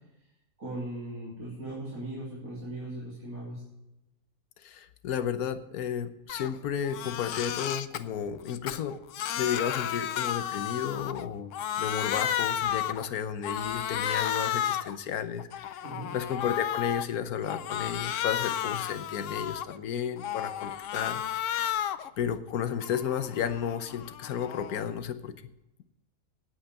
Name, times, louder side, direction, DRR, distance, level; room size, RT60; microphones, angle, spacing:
voice 1, 0.6-3.6 15.8-16.1, right 1 dB, 70° right, -7 dB, 3.6 m, -38 dB
voice 2, 4.6-9.0 9.4-11.5 11.8-15.8 16.1-21.5 22.2-25.3, left 8 dB, 80° left, 11 dB, 1.3 m, -33 dB
Crying sobbing, 6.3-6.5 6.8-8.0 8.5-11.3 11.5-13.1 13.4-15.0 15.4-17.1 17.5-19.8 20.2-22.1 22.5-24.9, left 10 dB, 65° left, 0.9 m, -32 dB
9.8 x 8.7 x 7.7 m, 0.94 s
omnidirectional pair, 1.5 m